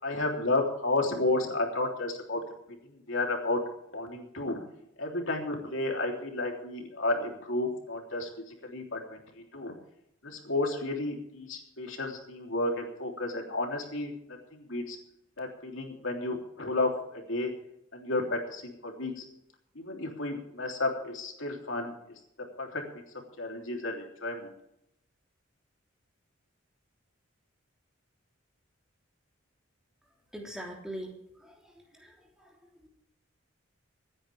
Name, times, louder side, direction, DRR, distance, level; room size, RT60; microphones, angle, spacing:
voice 1, 0.0-2.4 2.9-3.6 3.9-4.6 5.0-9.2 9.5-9.7 10.2-14.1 14.5-15.0 15.4-17.5 17.9-19.2 19.7-21.9 22.6-22.8 23.4-24.5, left 2 dB, 65° left, 2 dB, 3.3 m, -32 dB
voice 2, 30.3-31.2 31.4-31.5 32.0-32.1 32.4-32.5 32.8-32.9, equal, 5° right, -1 dB, 3.4 m, -40 dB
26.5 x 10.0 x 3.5 m, 0.79 s
head